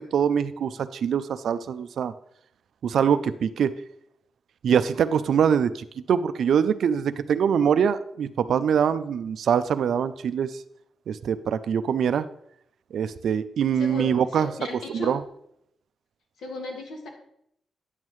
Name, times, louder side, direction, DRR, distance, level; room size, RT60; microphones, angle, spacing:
voice 1, 0.1-2.1 2.8-3.7 4.6-10.5 11.1-12.3 12.9-14.5 14.9-15.2, right 7 dB, 75° right, 12 dB, 0.4 m, -23 dB
voice 2, 13.8-15.2 16.4-17.1, left 2 dB, 85° left, 2 dB, 1.6 m, -35 dB
9.9 x 7.3 x 3.1 m, 0.73 s
cardioid pair, 115°, 0 cm